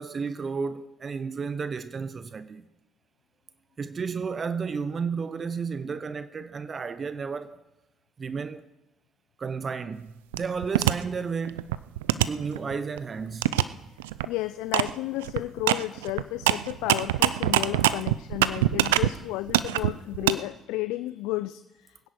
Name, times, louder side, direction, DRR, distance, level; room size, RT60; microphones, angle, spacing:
voice 1, 0.0-2.7 3.8-7.6 8.2-8.6 9.4-11.8 12.3-13.5, right 5 dB, 40° right, 0.8 m, -32 dB
sound 1, 10.3-10.9 11.4-13.0 13.4-13.6 14.0-14.3 14.7-14.9 15.2-19.1 19.5-20.3, right 15 dB, 85° right, 0.4 m, -23 dB
voice 2, 14.3-22.1, left 17 dB, 75° left, 0.4 m, -32 dB
22.0 x 10.0 x 4.5 m
hypercardioid pair, 55°, 0 cm